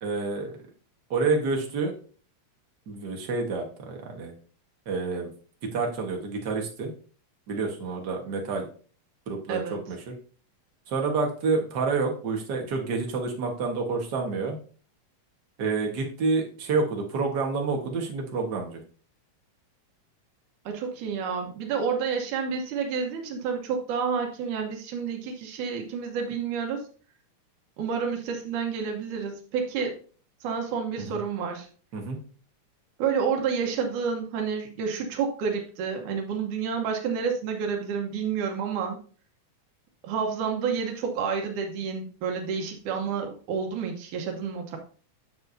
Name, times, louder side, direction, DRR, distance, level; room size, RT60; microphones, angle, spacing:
voice 1, 0.0-0.6 1.1-1.9 2.9-4.3 4.8-5.3 5.6-6.9 7.5-8.6 9.3-10.1 10.9-14.6 15.6-18.8 31.0-31.2 31.9-32.2, right 4 dB, 45° right, 2 dB, 1.5 m, -28 dB
voice 2, 20.7-26.8 27.8-30.0 30.4-31.7 33.0-39.0 40.0-44.8, right 6 dB, 90° right, 2 dB, 2.6 m, -29 dB
9.6 x 7.0 x 2.7 m, 0.41 s
omnidirectional pair, 3.4 m